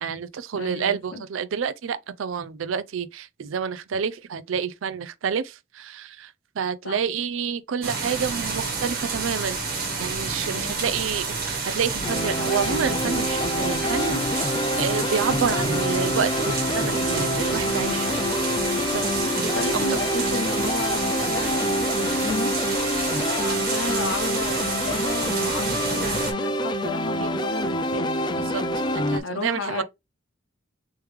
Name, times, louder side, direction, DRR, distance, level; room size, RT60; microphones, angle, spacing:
voice 1, 0.0-9.6 10.0-18.2 18.9-19.7 22.2-22.3 27.2-27.3 28.5-29.8, right 6 dB, 80° right, 0.4 m, -29 dB
voice 2, 0.6-1.2 6.8-7.0 10.4-10.8 18.9-22.5 22.8-28.5 29.2-29.8, left 3 dB, 75° left, 0.8 m, -33 dB
sound 1, 7.8-26.3, right 4 dB, 50° right, 1.3 m, -29 dB
sound 2, 12.0-29.2, left 1 dB, 25° left, 0.3 m, -26 dB
3.3 x 3.1 x 3.2 m
head